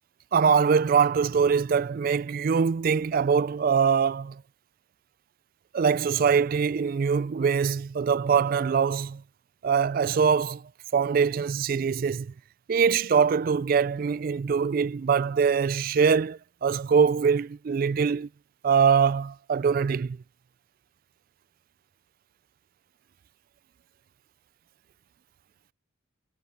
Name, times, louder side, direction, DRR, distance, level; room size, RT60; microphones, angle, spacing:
voice 1, 0.3-4.4 5.7-9.2 9.6-10.6 10.9-12.3 12.7-18.3 18.6-20.2, right 6 dB, 45° right, 0.3 m, -23 dB
head